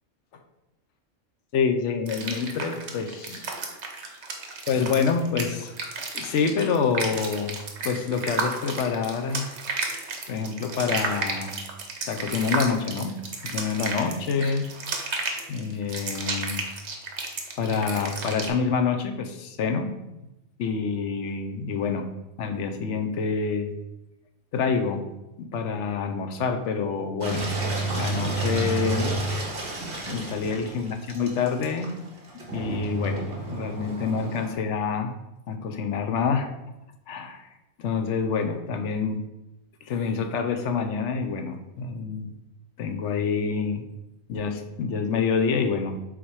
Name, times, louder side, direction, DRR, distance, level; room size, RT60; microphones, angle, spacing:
voice 1, 1.5-3.5 4.7-5.8 6.1-7.6 7.8-9.5 10.3-11.6 12.1-13.2 13.4-14.7 15.5-16.6 17.6-19.9 20.6-22.1 22.4-23.7 24.5-25.1 25.4-27.4 27.9-29.1 30.1-32.0 32.5-35.1 35.5-36.5 37.1-37.5 37.8-39.2 39.8-42.3 42.8-43.8 44.3-46.0, left 5 dB, 80° left, 6 dB, 1.0 m, -27 dB
sound 1, 2.1-18.5, right 4 dB, 70° right, 1.3 m, -32 dB
Engine, 27.2-34.6, right 2 dB, 55° right, 1.5 m, -30 dB
6.0 x 4.0 x 4.7 m, 0.95 s
omnidirectional pair, 1.2 m